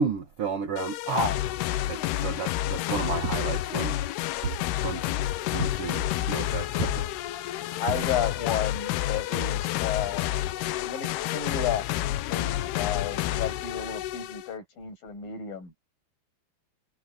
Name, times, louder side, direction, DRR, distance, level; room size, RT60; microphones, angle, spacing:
voice 1, 0.0-1.3 1.9-3.9 4.8-5.1 5.4-7.1, right 5 dB, 75° right, 1.3 m, -31 dB
sound 1, 0.8-14.5, left 14 dB, 80° left, 2.8 m, -29 dB
sound 2, 3.2-4.0 4.4-5.1 5.6-6.1 6.7-7.4 7.9-8.5 9.7-9.8 11.8-11.9, right 3 dB, 55° right, 4.8 m, -35 dB
voice 2, 7.8-10.4 10.8-11.8 12.1-15.8, left 8 dB, 55° left, 8.9 m, -32 dB
omnidirectional pair, 4.9 m